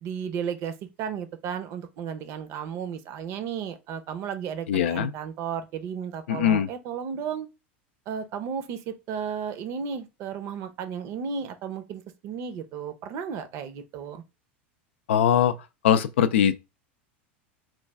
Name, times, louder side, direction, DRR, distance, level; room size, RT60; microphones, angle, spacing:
voice 1, 0.0-7.5 8.1-14.2, right 7 dB, 50° right, 0.6 m, -34 dB
voice 2, 4.7-5.1 6.3-6.7 15.1-16.6, left 9 dB, 80° left, 0.3 m, -22 dB
3.2 x 2.3 x 3.3 m
hypercardioid pair, 100°, 6 cm